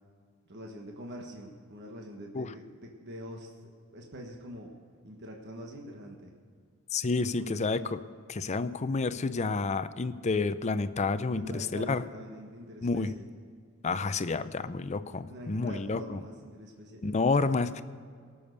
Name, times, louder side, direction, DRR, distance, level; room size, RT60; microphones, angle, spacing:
voice 1, 0.5-3.6 3.9-4.7 5.0-6.3 7.1-7.7 11.2-13.3 15.3-17.2, equal, 55° right, 1 dB, 1.4 m, -44 dB
voice 2, 6.9-8.0 8.3-12.0 12.8-13.1 13.8-16.2 17.0-17.8, left 3 dB, 35° left, 13 dB, 0.5 m, -29 dB
17.5 x 7.1 x 6.5 m, 2.1 s
head